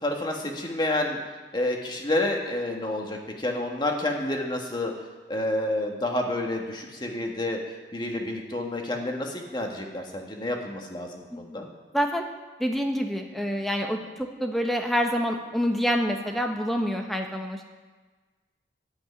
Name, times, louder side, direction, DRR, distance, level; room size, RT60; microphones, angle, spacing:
voice 1, 0.0-1.2 1.5-4.9 5.3-7.6 7.9-11.7, left 1 dB, 25° left, 1 dB, 1.7 m, -29 dB
voice 2, 11.3-11.6 11.9-12.2 12.6-17.7, equal, ahead, 3 dB, 1.2 m, -27 dB
12.0 x 8.5 x 9.7 m, 1.3 s
head